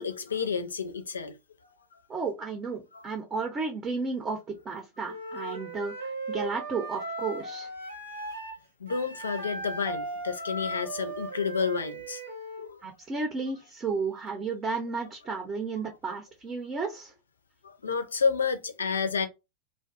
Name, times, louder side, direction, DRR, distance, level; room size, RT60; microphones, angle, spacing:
voice 1, 0.0-1.3 2.9-3.0 8.8-12.2 12.6-12.8 17.6-19.3, left 5 dB, 70° left, 0.5 m, -30 dB
voice 2, 2.1-7.7 12.8-17.1, right 4 dB, 25° right, 0.6 m, -33 dB
Wind instrument woodwind instrument, 5.0-8.6 8.9-12.7, right 2 dB, 70° right, 1.0 m, -37 dB
2.6 x 2.2 x 2.3 m
figure-of-eight pair, 90°, 0 cm